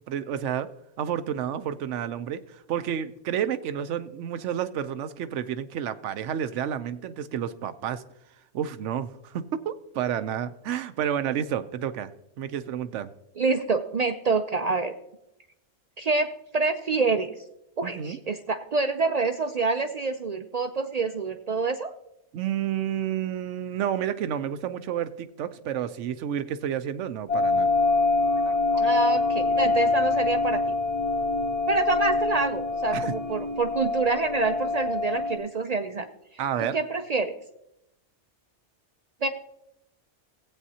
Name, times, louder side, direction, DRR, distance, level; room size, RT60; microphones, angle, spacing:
voice 1, 0.1-0.7 1.0-8.0 8.5-12.1 12.4-13.1 17.8-18.2 22.3-27.7 28.5-28.9 32.9-33.1 36.4-36.8, right 9 dB, 85° right, 12 dB, 1.0 m, -30 dB
voice 2, 13.4-14.9 16.0-17.3 17.8-21.9 28.8-30.6 31.7-36.1 36.6-37.3 39.2-39.3, right 3 dB, 55° right, 8 dB, 0.4 m, -27 dB
sound 1, 27.3-35.4, left 3 dB, 70° left, 1.7 m, -25 dB
17.5 x 8.4 x 2.8 m, 0.84 s
omnidirectional pair, 1.2 m